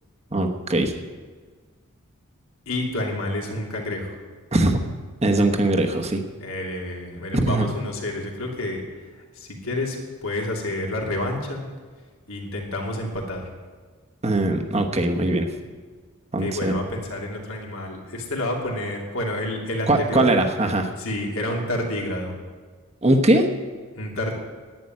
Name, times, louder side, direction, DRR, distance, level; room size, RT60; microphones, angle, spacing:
voice 1, 0.3-1.0 4.5-4.8 5.2-6.2 7.3-7.7 14.2-15.5 16.3-16.8 19.9-20.9 23.0-23.5, right 1 dB, 30° right, 3 dB, 1.2 m, -20 dB
voice 2, 2.7-4.1 6.4-8.8 9.3-11.7 12.3-13.4 16.4-20.2 21.0-22.3 24.0-24.4, left 1 dB, 75° left, 0 dB, 2.8 m, -29 dB
11.0 x 9.2 x 9.7 m, 1.5 s
head